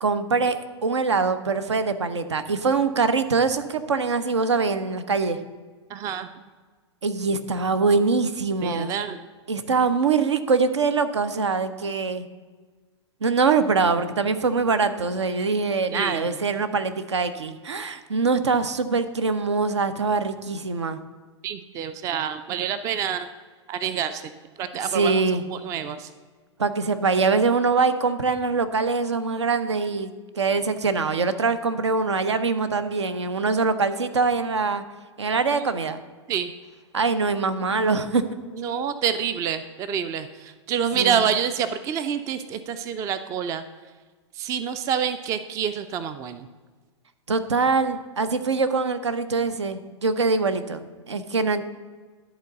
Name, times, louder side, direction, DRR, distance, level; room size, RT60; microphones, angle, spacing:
voice 1, 0.0-5.4 7.0-8.9 9.5-12.3 13.2-21.0 24.9-25.4 26.6-34.8 35.2-36.0 36.9-38.2 41.0-41.2 47.3-51.6, right 4 dB, 70° right, 11 dB, 0.6 m, -23 dB
voice 2, 5.9-6.3 8.6-9.2 15.9-16.4 21.4-23.3 23.7-24.3 24.6-26.1 35.5-35.7 36.3-36.5 38.5-43.6 44.3-46.5, right 8 dB, 20° right, 12 dB, 0.4 m, -27 dB
11.0 x 3.9 x 6.5 m, 1.4 s
figure-of-eight pair, 105°, 15 cm